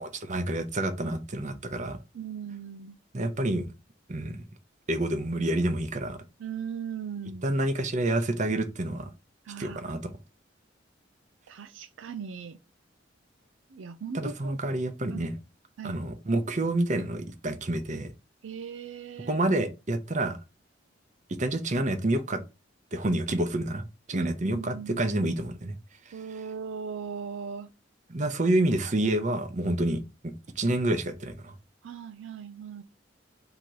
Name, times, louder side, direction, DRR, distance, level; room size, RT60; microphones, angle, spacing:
voice 1, 0.0-2.0 3.1-3.7 4.1-4.4 4.9-6.2 7.4-9.1 9.6-10.0 14.1-15.3 15.8-18.1 19.3-20.4 21.4-22.4 22.9-25.7 28.1-31.5, right 1 dB, 40° right, 0.7 m, -28 dB
voice 2, 2.1-3.0 6.4-7.4 9.4-9.8 11.5-12.6 13.7-14.6 15.1-15.3 15.8-16.1 18.4-19.4 24.1-25.1 26.1-27.7 31.8-32.8, right 6 dB, 85° right, 0.4 m, -38 dB
3.8 x 2.9 x 4.6 m
head